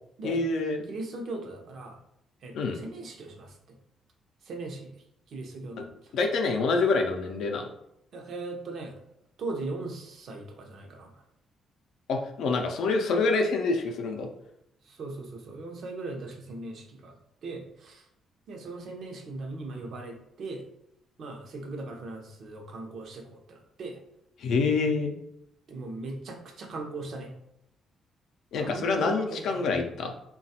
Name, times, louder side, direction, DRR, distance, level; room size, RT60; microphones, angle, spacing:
voice 1, 0.2-0.8 2.5-2.8 6.1-7.7 12.1-14.3 24.4-25.1 28.5-30.1, left 3 dB, 75° left, 3 dB, 0.4 m, -26 dB
voice 2, 0.9-2.0 2.4-3.5 4.5-4.9 5.3-5.9 8.1-8.9 9.4-11.1 14.8-17.1 17.4-18.0 18.5-20.6 21.2-24.0 25.7-27.3 28.5-29.8, right 2 dB, 65° right, 2 dB, 0.6 m, -39 dB
3.1 x 2.2 x 2.7 m, 0.79 s
cardioid pair, 90°, 0 cm